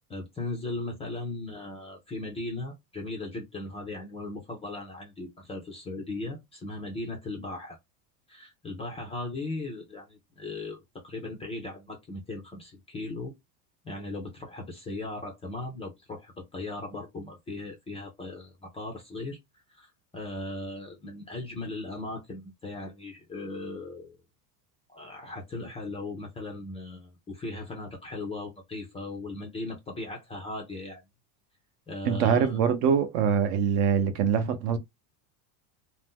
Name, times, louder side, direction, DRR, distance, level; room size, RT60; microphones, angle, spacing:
voice 1, 0.1-7.8 8.3-13.3 13.8-19.4 19.7-24.2 24.9-31.0 31.9-32.6, left 2 dB, 15° left, 0.4 m, -38 dB
voice 2, 32.0-34.8, right 7 dB, 50° right, 0.7 m, -24 dB
2.6 x 2.1 x 3.5 m
supercardioid pair, 145°, 48 cm